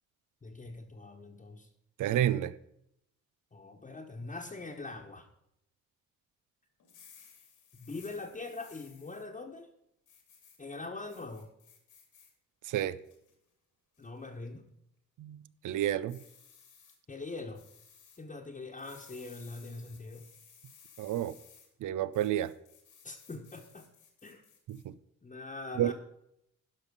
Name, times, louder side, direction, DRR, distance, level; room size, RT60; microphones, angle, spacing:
voice 1, 0.4-1.7 3.5-5.3 7.7-9.7 10.6-11.5 14.0-14.6 17.1-17.6 18.2-20.3 23.0-23.9 24.2-24.4 25.2-25.9, left 3 dB, 25° left, 1.2 m, -43 dB
voice 2, 2.0-2.5 12.7-13.0 15.2-16.2 21.0-21.4 21.8-22.5 24.7-24.8 25.8-25.9, right 12 dB, 80° right, 0.5 m, -30 dB
sound 1, 6.8-9.2 10.1-10.6 11.1-12.3 12.8-13.3 13.9-14.3 16.1-17.0 17.5-18.2 18.8-21.7 22.1-24.8, left 7 dB, 85° left, 2.5 m, -58 dB
12.0 x 5.5 x 5.4 m
cardioid pair, 80°, 30 cm